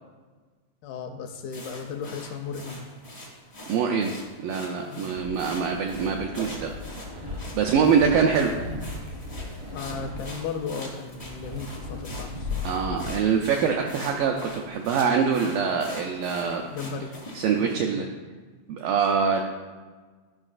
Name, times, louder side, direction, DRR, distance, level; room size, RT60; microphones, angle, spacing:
voice 1, 0.8-2.8 4.9-5.1 7.8-8.2 9.7-12.7 16.7-17.1 17.5-18.1, left 5 dB, 80° left, 4 dB, 2.3 m, -36 dB
sound 1, 1.5-17.7, left 1 dB, 65° left, 0.4 m, -43 dB
voice 2, 3.7-6.7 7.6-8.6 12.6-16.6 17.4-18.1 18.7-19.4, right 6 dB, 85° right, 1 dB, 2.0 m, -24 dB
sound 2, 5.1-13.2, left 3 dB, 50° right, 0.6 m, -37 dB
13.0 x 5.5 x 2.4 m, 1.4 s
omnidirectional pair, 4.5 m